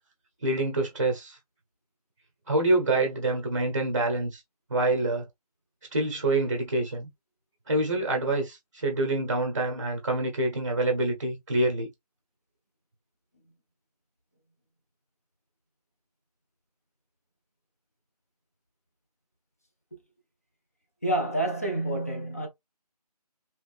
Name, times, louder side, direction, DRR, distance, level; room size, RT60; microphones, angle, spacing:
voice 1, 0.4-1.4 2.5-4.4 4.7-5.2 5.9-7.1 7.7-11.9, right 2 dB, 25° right, 0.7 m, -26 dB
voice 2, 21.0-22.5, right 1 dB, 25° left, 0.5 m, -28 dB
3.2 x 3.1 x 2.4 m
figure-of-eight pair, 165°, 21 cm